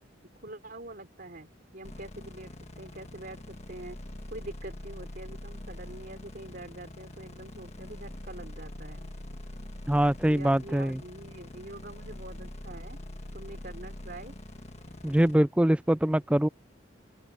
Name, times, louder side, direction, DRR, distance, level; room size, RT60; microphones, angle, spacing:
voice 1, 0.4-1.5 1.7-4.0 4.3-9.1 10.3-13.0 13.3-14.3, right 2 dB, 50° right, 3.8 m, -45 dB
sound 1, 1.8-15.3, left 1 dB, 35° left, 1.4 m, -44 dB
voice 2, 9.9-11.0 15.0-16.5, right 1 dB, 5° right, 0.3 m, -23 dB
open air
head